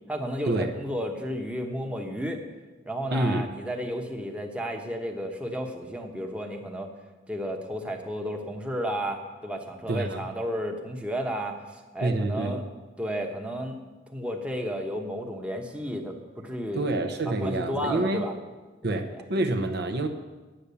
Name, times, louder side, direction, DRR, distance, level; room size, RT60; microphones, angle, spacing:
voice 1, 0.1-2.4 2.8-6.9 7.3-12.6 13.0-13.8 14.1-16.9 17.3-18.3 18.8-19.2, equal, 5° right, 2 dB, 1.0 m, -32 dB
voice 2, 3.1-3.5 9.9-10.3 12.0-12.6 16.7-18.3 18.8-20.1, right 2 dB, 60° right, 5 dB, 0.9 m, -27 dB
10.0 x 8.6 x 6.9 m, 1.2 s
head